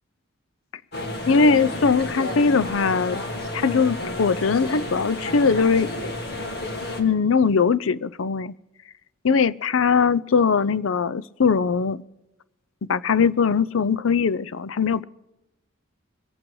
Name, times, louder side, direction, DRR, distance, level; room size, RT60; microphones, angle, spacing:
sound 1, 0.9-7.0, left 1 dB, 55° left, 2.2 m, -31 dB
voice 1, 1.3-3.2 3.5-5.9 7.0-8.5 9.2-12.0 12.9-15.0, left 5 dB, 75° left, 18 dB, 0.5 m, -20 dB
23.0 x 8.8 x 4.7 m, 0.95 s
head